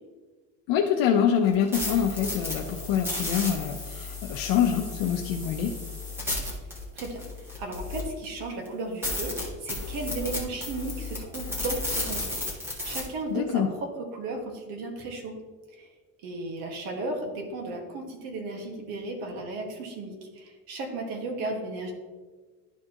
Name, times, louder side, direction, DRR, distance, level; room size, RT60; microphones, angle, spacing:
voice 1, 0.7-5.7 13.3-13.7, left 8 dB, 70° left, 2 dB, 0.7 m, -25 dB
sound 1, 1.5-8.2 8.7-8.8 9.0-13.0, left 2 dB, 5° right, 1.5 m, -33 dB
voice 2, 6.9-9.4 9.6-12.4 12.8-15.3 15.7-15.9 16.2-21.9, right 2 dB, 85° right, 2 dB, 1.8 m, -35 dB
12.0 x 4.5 x 2.9 m, 1.4 s
cardioid pair, 170°, 35 cm